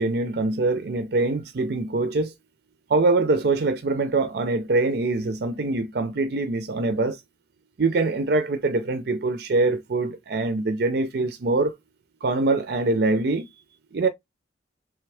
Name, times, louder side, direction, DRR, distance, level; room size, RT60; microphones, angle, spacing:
voice 1, 0.0-2.3 2.9-7.2 7.8-11.8 12.2-13.5 13.9-14.1, right 3 dB, 55° right, 0.5 m, -23 dB
3.4 x 3.2 x 3.3 m
head